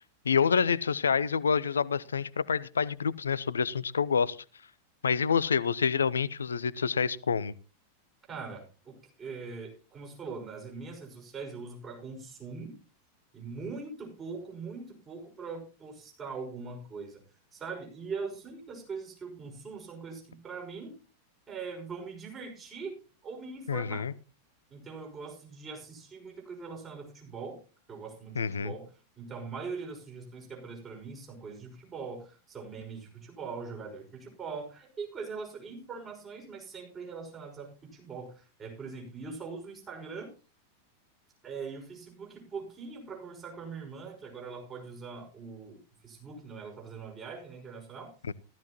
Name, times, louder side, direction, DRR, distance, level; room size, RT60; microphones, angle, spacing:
voice 1, 0.2-4.4 5.0-7.5 23.7-24.1 28.4-28.7 48.3-48.4, left 6 dB, 70° left, 21 dB, 0.5 m, -27 dB
voice 2, 8.3-12.8 13.3-17.2 17.5-21.0 21.5-24.1 24.7-27.6 27.9-28.9 29.2-40.3 41.4-48.1, right 4 dB, 25° right, 0 dB, 5.7 m, -42 dB
15.0 x 14.0 x 3.0 m, 0.35 s
figure-of-eight pair, 90°, 0 cm